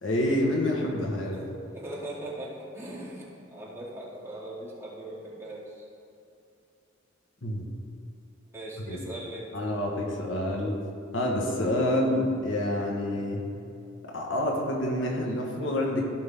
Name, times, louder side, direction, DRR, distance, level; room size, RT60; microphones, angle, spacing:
voice 1, 0.0-1.4 7.4-7.7 8.9-9.0 9.5-10.8 11.1-13.5 14.0-16.0, left 1 dB, 75° left, -1 dB, 1.4 m, -28 dB
voice 2, 1.3-5.8 8.5-9.5, right 1 dB, 15° right, -7 dB, 2.2 m, -40 dB
15.5 x 5.4 x 3.7 m, 2.6 s
head